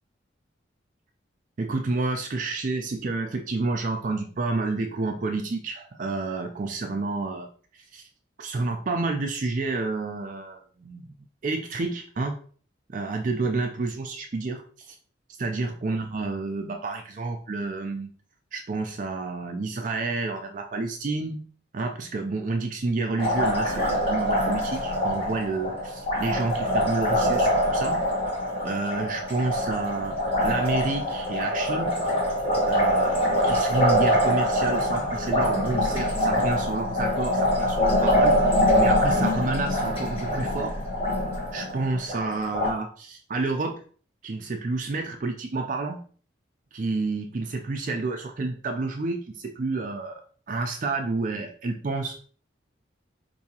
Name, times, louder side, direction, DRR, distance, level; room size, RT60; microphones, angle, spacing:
voice 1, 1.6-7.5 7.7-8.0 8.4-11.1 11.4-12.4 12.9-15.0 15.4-18.1 18.5-21.4 21.7-28.0 28.6-32.0 32.7-38.4 38.7-40.8 41.5-43.8 44.2-46.0 46.7-52.1, right 3 dB, 40° right, 3 dB, 0.4 m, -29 dB
Liquid, 23.2-42.7, equal, 30° left, 1.2 m, -24 dB
4.7 x 2.6 x 2.8 m, 0.43 s
head